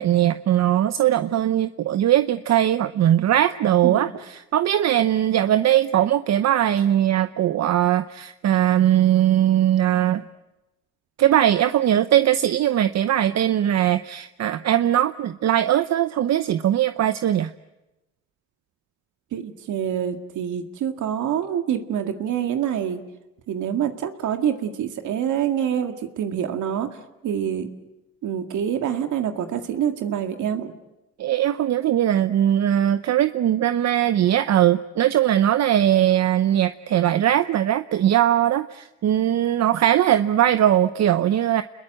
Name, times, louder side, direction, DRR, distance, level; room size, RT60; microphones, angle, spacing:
voice 1, 0.0-10.2 11.2-17.5 31.2-41.6, right 11 dB, 60° right, 11 dB, 0.8 m, -20 dB
voice 2, 19.3-23.0 23.5-26.9 27.2-27.7 28.2-30.7, right 9 dB, 75° right, 6 dB, 2.0 m, -26 dB
29.5 x 21.5 x 7.8 m, 0.99 s
cardioid pair, 90°, 30 cm